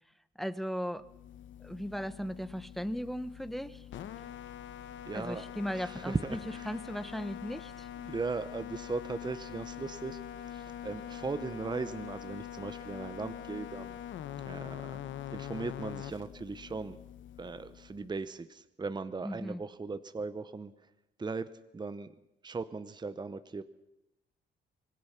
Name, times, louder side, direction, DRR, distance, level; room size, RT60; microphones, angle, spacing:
voice 1, 0.4-1.1 1.6-3.9 5.1-6.4 6.7-7.9 19.2-19.6, equal, ahead, 14 dB, 1.1 m, -37 dB
sound 1, 1.0-18.2, left 10 dB, 70° left, 1.0 m, -44 dB
voice 2, 5.1-5.4 5.7-6.7 8.0-14.0 14.4-15.0 15.3-17.0 17.4-20.7 21.2-22.1 22.4-23.6, right 4 dB, 20° right, 12 dB, 0.9 m, -38 dB
25.5 x 20.0 x 5.8 m, 0.87 s
cardioid pair, 90°, 20 cm